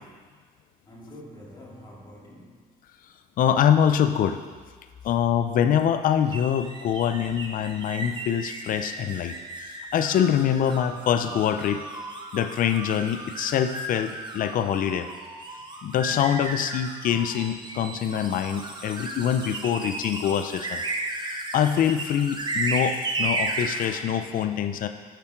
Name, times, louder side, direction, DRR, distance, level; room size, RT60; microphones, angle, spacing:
voice 1, 0.8-2.6 13.3-13.4, left 1 dB, 25° left, -5 dB, 2.3 m, -46 dB
voice 2, 3.4-4.4 5.0-11.8 12.3-15.1 15.8-20.8 21.5-24.9, left 9 dB, 55° left, 9 dB, 0.6 m, -24 dB
sound 1, 6.3-24.0, right 2 dB, 25° right, 1.1 m, -34 dB
8.2 x 7.3 x 4.6 m, 1.5 s
cardioid pair, 110°, 17 cm